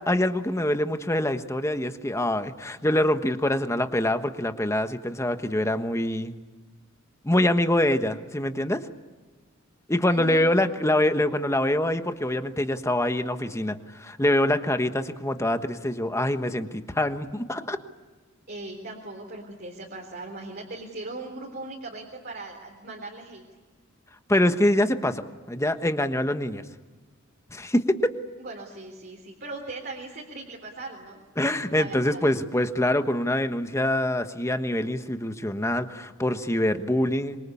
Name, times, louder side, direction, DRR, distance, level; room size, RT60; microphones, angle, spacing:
voice 1, 0.0-6.4 7.2-8.8 9.9-17.8 24.3-25.2 25.5-26.6 27.5-28.2 31.4-37.4, left 1 dB, 15° left, 8 dB, 1.3 m, -25 dB
voice 2, 10.1-10.5 18.5-23.4 28.4-31.2 31.8-32.2, right 2 dB, 50° right, 0 dB, 3.7 m, -39 dB
26.0 x 23.5 x 8.5 m, 1.3 s
head